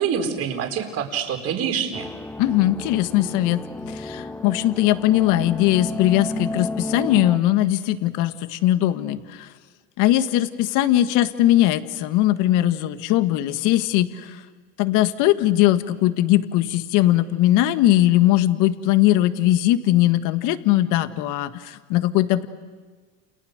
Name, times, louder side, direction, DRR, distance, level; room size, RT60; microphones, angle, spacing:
voice 1, 0.0-2.1, right 7 dB, 40° right, 4 dB, 4.4 m, -26 dB
sound 1, 1.9-7.4, left 2 dB, 5° left, 1.0 m, -32 dB
voice 2, 2.4-3.6 3.9-9.5 10.0-14.4 14.8-22.5, left 14 dB, 55° left, 10 dB, 1.7 m, -20 dB
29.0 x 29.0 x 6.6 m, 1.4 s
supercardioid pair, 110°, 38 cm